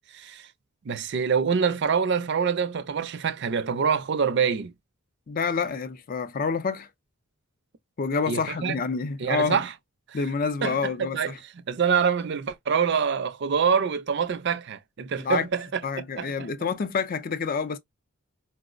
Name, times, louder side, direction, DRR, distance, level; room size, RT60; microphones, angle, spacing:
voice 1, 0.1-0.5 0.8-4.7 8.3-8.8 9.2-9.7 10.1-10.2 10.6-11.3 11.7-15.8 16.2-16.5, right 6 dB, 55° right, 0.4 m, -25 dB
voice 2, 5.3-6.9 8.0-9.6 10.1-11.4 15.2-15.5 15.8-17.8, left 5 dB, 40° left, 0.4 m, -28 dB
4.2 x 2.0 x 2.4 m
head